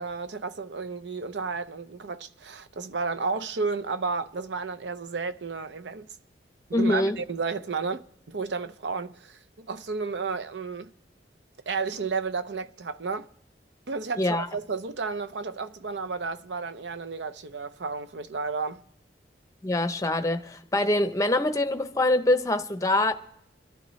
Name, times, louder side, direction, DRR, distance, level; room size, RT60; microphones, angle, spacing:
voice 1, 0.0-6.1 6.7-10.9 11.7-13.3 13.9-18.8, right 4 dB, 75° right, 0.6 m, -32 dB
voice 2, 6.7-7.2 14.2-14.5 19.6-23.1, left 1 dB, 20° left, 0.7 m, -24 dB
25.5 x 12.0 x 3.2 m
head